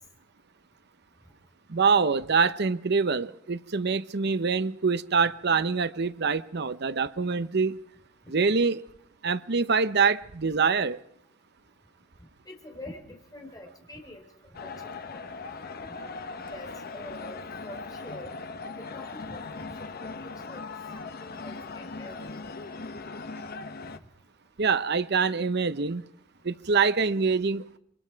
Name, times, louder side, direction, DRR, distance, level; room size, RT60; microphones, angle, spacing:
voice 1, 1.7-7.8 8.3-8.8 9.2-11.0 24.6-26.0 26.4-27.8, right 5 dB, 60° right, 0.8 m, -25 dB
voice 2, 12.5-14.3 14.6-15.9 16.5-18.3 18.8-22.4, left 1 dB, 20° left, 3.8 m, -46 dB
sound 1, 14.5-24.0, left 4 dB, 50° left, 0.9 m, -39 dB
25.5 x 23.0 x 4.6 m
head